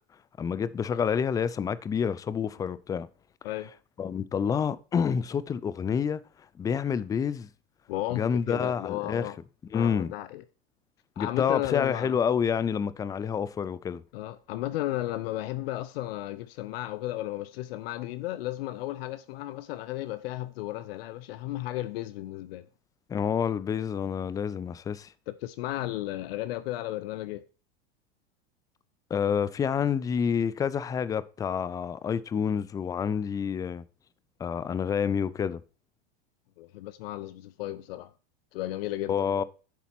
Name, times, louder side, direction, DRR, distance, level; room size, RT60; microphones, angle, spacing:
voice 1, 0.4-3.1 4.0-6.2 6.6-7.5 8.1-9.3 9.7-10.1 11.2-14.0 23.1-25.1 29.1-33.8 34.4-35.6 39.1-39.4, left 7 dB, 10° left, 0.3 m, -28 dB
voice 2, 7.9-9.4 9.7-10.4 11.2-12.2 14.1-22.7 25.3-27.4 36.6-38.1 38.5-39.4, left 15 dB, 65° left, 0.7 m, -34 dB
10.5 x 4.1 x 5.8 m
supercardioid pair, 125°, 31 cm